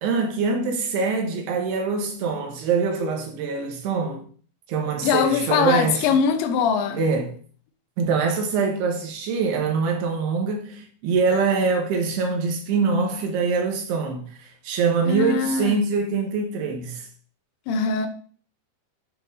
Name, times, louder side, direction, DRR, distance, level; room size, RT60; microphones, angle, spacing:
voice 1, 0.0-4.2 4.7-6.1 7.0-7.3 8.0-17.1, right 4 dB, 75° right, 3.0 m, -24 dB
voice 2, 5.0-7.0 15.1-15.8 17.7-18.1, left 6 dB, 80° left, 3.1 m, -22 dB
9.9 x 6.9 x 2.7 m
omnidirectional pair, 5.3 m